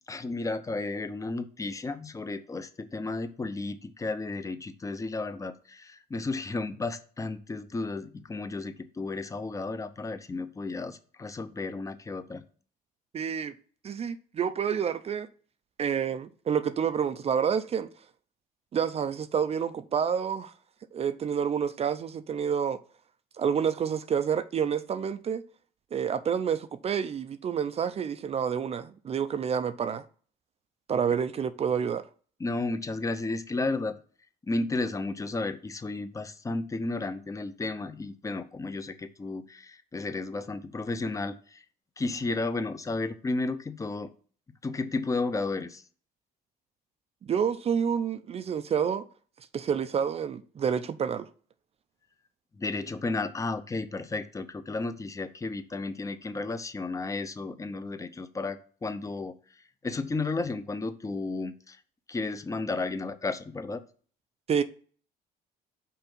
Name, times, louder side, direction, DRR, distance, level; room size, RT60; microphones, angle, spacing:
voice 1, 0.1-12.4 32.4-33.9 34.5-41.6 42.0-44.1 44.6-45.8 52.6-59.4 59.8-61.8 62.1-63.8, left 3 dB, 20° left, 0.7 m, -33 dB
voice 2, 13.1-13.5 13.8-15.3 15.8-17.9 18.7-20.5 20.9-22.8 23.4-25.4 25.9-30.0 30.9-32.0 47.2-49.0 49.5-51.3 64.5-64.6, right 7 dB, 35° right, 0.5 m, -28 dB
5.7 x 4.5 x 5.4 m
cardioid pair, 110°, 17 cm